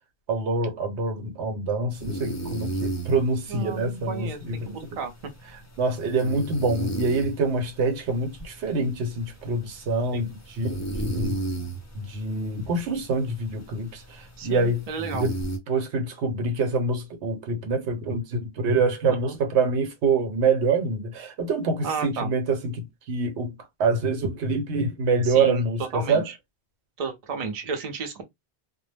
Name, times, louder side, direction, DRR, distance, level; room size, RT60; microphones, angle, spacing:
voice 1, 0.3-4.8 5.8-11.4 11.9-14.8 15.1-15.4 15.7-23.5 23.8-26.3, right 3 dB, 85° right, 1.0 m, -26 dB
sound 1, 1.9-15.6, right 1 dB, 25° left, 0.4 m, -35 dB
voice 2, 3.5-5.1 10.1-10.3 11.2-11.3 12.6-12.7 14.4-15.3 19.1-19.4 21.8-22.3 25.2-25.6 25.9-26.3 27.0-28.2, right 5 dB, 45° right, 0.6 m, -33 dB
2.1 x 2.0 x 3.2 m
omnidirectional pair, 1.1 m